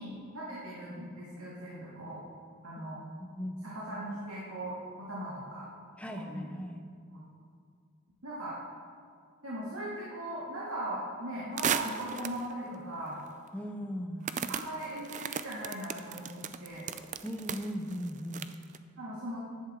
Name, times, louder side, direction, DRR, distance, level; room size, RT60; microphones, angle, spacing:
voice 1, 0.0-2.2 2.6-3.0 3.6-5.7 6.1-6.5 7.1-7.2 8.2-8.6 9.4-13.2 14.5-16.9 19.0-19.4, right 1 dB, 75° right, -7 dB, 2.4 m, -39 dB
voice 2, 3.2-3.6 6.0-6.8 13.5-14.3 17.2-18.5, equal, 5° left, 5 dB, 0.6 m, -38 dB
sound 1, 11.6-12.5 13.2-13.3 14.2-18.8, right 7 dB, 35° right, 0.4 m, -35 dB
14.5 x 11.0 x 3.8 m, 2.2 s
head